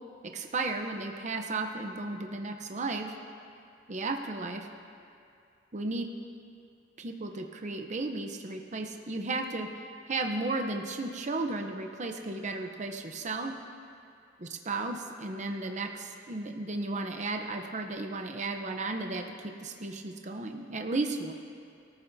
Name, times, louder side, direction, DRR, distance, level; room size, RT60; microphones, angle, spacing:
voice 1, 0.3-3.1 3.9-4.7 5.7-6.1 7.0-9.7 10.1-13.5 14.4-21.3, right 3 dB, 40° right, 4 dB, 0.7 m, -34 dB
23.5 x 14.0 x 2.7 m, 2.4 s
head